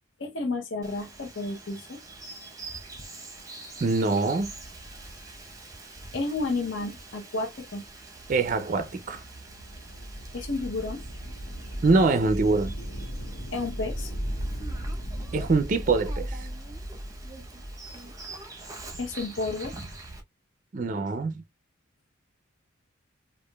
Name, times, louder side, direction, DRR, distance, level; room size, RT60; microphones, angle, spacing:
voice 1, 0.2-2.0 6.1-7.8 10.3-11.0 13.5-14.1 19.0-19.7, left 3 dB, 60° left, 0.7 m, -31 dB
Bird vocalization bird call bird song, 0.8-20.2, right 2 dB, 15° right, 0.7 m, -45 dB
voice 2, 3.8-4.5 8.3-9.2 11.8-12.7 15.3-16.5 20.7-21.4, right 3 dB, 40° right, 0.4 m, -24 dB
sound 1, 8.1-18.2, equal, 90° left, 1.3 m, -36 dB
4.8 x 2.4 x 2.2 m
head